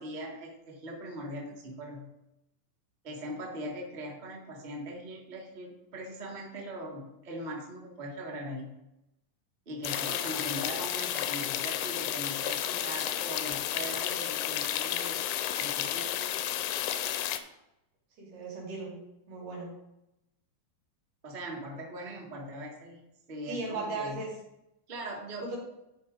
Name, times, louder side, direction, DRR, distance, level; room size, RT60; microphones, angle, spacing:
voice 1, 0.0-2.1 3.0-8.8 9.6-15.2 15.6-16.4 21.2-23.0 23.3-24.2 24.9-25.5, right 1 dB, 35° right, -2 dB, 0.7 m, -40 dB
sound 1, 9.8-17.4, left 11 dB, 80° left, 1.9 m, -32 dB
voice 2, 18.2-18.9 19.3-19.7 23.5-24.3, right 3 dB, 75° right, -4 dB, 4.0 m, -36 dB
11.5 x 4.8 x 3.9 m, 0.88 s
omnidirectional pair, 3.7 m